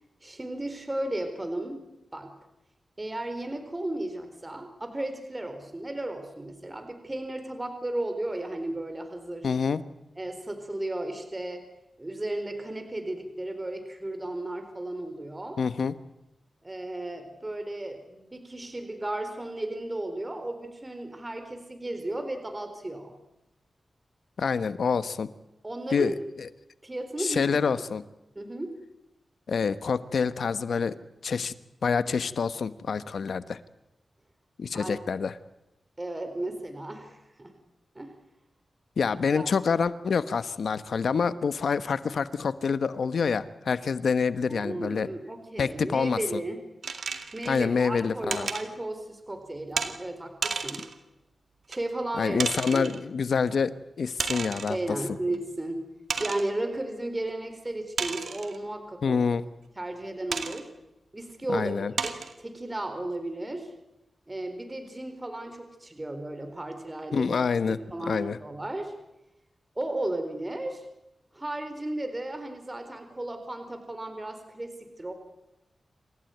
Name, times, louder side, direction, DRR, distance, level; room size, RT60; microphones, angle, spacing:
voice 1, 0.2-1.9 2.1-2.3 3.0-9.5 10.2-11.6 12.0-15.6 16.6-23.1 25.6-26.2 26.8-27.7 28.4-28.8 34.7-35.0 36.0-37.5 37.9-38.2 39.3-39.5 44.5-46.6 47.3-50.8 51.7-52.4 52.7-52.9 54.7-55.9 56.2-59.2 59.8-60.7 61.1-61.7 62.0-63.7 64.3-67.3 67.7-68.9 69.8-70.8 71.3-75.1, right 1 dB, 25° right, 7 dB, 4.2 m, -34 dB
voice 2, 9.4-9.8 15.6-15.9 24.4-25.3 25.9-26.5 27.2-28.0 29.5-31.5 31.8-33.6 34.6-35.4 39.0-45.1 45.6-46.2 47.5-48.5 52.2-55.0 59.0-59.4 61.5-61.9 67.1-68.4, left 5 dB, 80° left, 13 dB, 1.1 m, -27 dB
sound 1, 46.8-47.6 48.3-48.7 49.8-49.9 50.4-51.0 51.7-51.8 52.4-53.0 54.2-54.8 55.3-55.4 56.1-56.5 58.0-58.6 60.3-60.6 61.3-61.4 62.0-62.3, right 5 dB, 85° right, 2.2 m, -32 dB
28.5 x 15.0 x 9.3 m, 0.91 s
cardioid pair, 70°, 0 cm